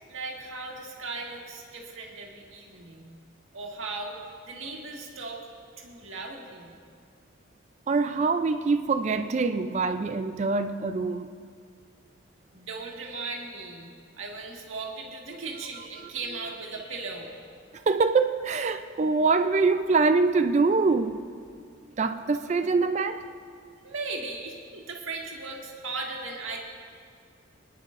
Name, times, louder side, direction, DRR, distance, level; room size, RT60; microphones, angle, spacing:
voice 1, 0.1-3.2 3.5-4.2 4.5-5.4 5.8-6.7 12.5-17.3 23.8-26.6, right 3 dB, 75° right, 1.7 m, -37 dB
voice 2, 7.9-11.3 15.3-15.5 16.0-16.1 17.9-21.2 22.0-23.3, right 4 dB, 35° right, 0.3 m, -24 dB
25.0 x 10.0 x 2.5 m
head